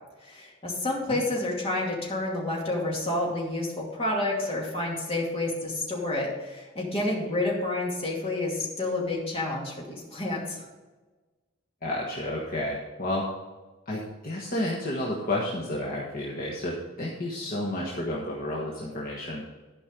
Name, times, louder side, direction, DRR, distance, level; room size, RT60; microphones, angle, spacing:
voice 1, 0.2-10.6, left 2 dB, 30° left, -3 dB, 2.5 m, -29 dB
voice 2, 11.8-13.2 13.9-19.4, left 1 dB, 45° left, -4 dB, 1.4 m, -31 dB
12.0 x 5.3 x 5.2 m, 1.3 s
head